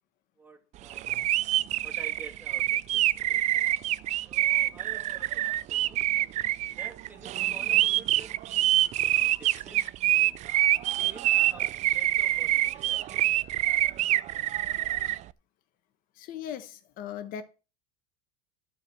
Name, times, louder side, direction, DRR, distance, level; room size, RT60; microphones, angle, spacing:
voice 1, 0.4-1.2 1.8-3.7 4.3-6.0 6.6-10.4 11.0-13.3, right 2 dB, 10° right, 2.6 m, -51 dB
sound 1, 0.9-15.2, right 14 dB, 40° right, 0.5 m, -26 dB
voice 2, 16.1-17.4, left 9 dB, 55° left, 1.1 m, -38 dB
11.5 x 4.7 x 7.6 m
supercardioid pair, 115°, 18 cm